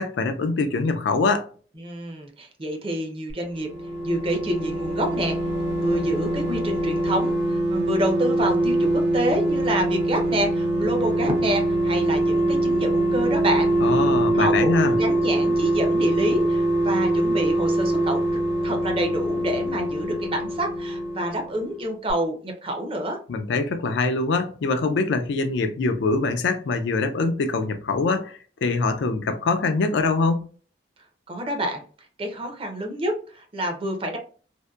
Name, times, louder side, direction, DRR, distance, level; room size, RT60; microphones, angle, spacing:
voice 1, 0.0-1.5 13.8-15.0 23.3-30.4, left 3 dB, 85° left, 0.4 m, -24 dB
voice 2, 1.8-3.7 4.0-5.4 5.8-14.0 14.3-18.2 18.6-23.2 31.3-31.8 32.2-34.2, right 1 dB, 30° right, 0.5 m, -27 dB
sound 1, 3.5-21.8 22.1-22.2, right 1 dB, 85° right, 0.6 m, -23 dB
2.6 x 2.1 x 2.3 m
head